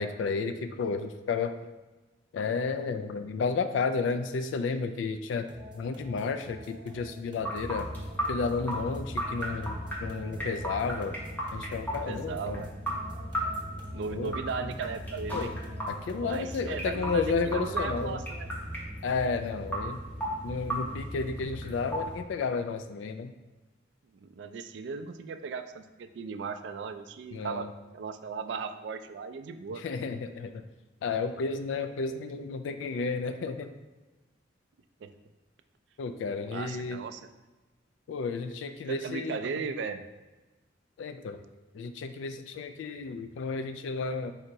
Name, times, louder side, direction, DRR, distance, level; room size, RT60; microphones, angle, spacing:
voice 1, 0.0-1.5 2.3-5.4 5.7-7.9 8.3-11.1 11.5-12.6 14.1-14.4 15.3-15.5 15.9-18.2 19.0-20.0 20.4-23.3 27.3-27.7 29.7-30.6 31.0-33.7 36.0-37.0 38.1-39.4 41.0-41.4 41.7-44.3, left 4 dB, 85° left, 8 dB, 0.3 m, -32 dB
sound 1, 5.5-16.6, equal, 25° right, 0.7 m, -49 dB
sound 2, 7.5-22.2, equal, 10° left, 0.8 m, -36 dB
voice 2, 11.9-12.7 13.9-15.5 16.2-18.5 24.2-27.7 27.9-29.8 35.0-35.1 36.5-37.2 38.9-40.0, right 5 dB, 65° right, 8 dB, 0.3 m, -37 dB
3.8 x 2.8 x 4.5 m, 1.2 s
head